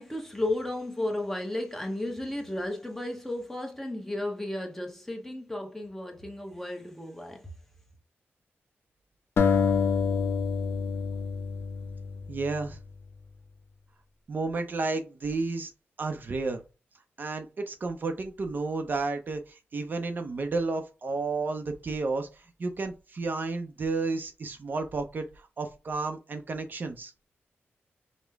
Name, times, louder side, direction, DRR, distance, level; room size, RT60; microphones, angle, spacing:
voice 1, 0.0-7.5, left 1 dB, 5° left, 0.8 m, -34 dB
sound 1, 9.4-12.6, left 6 dB, 65° left, 0.6 m, -27 dB
voice 2, 12.3-12.8 14.3-15.7 16.0-16.6 17.2-27.1, right 3 dB, 45° right, 0.5 m, -32 dB
5.0 x 2.1 x 3.4 m
wide cardioid pair, 120°, 4 cm